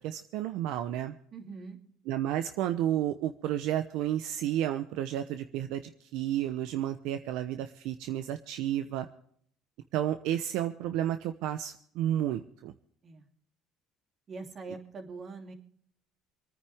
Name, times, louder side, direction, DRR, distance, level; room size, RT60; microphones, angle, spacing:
voice 1, 0.0-1.1 2.1-5.8 6.1-9.1 9.9-12.7, right 12 dB, 75° right, 9 dB, 0.8 m, -31 dB
voice 2, 1.3-1.8 13.0-13.3 14.3-15.5, right 4 dB, 40° right, 4 dB, 2.9 m, -43 dB
27.5 x 9.6 x 3.5 m, 0.63 s
supercardioid pair, 95°, 0 cm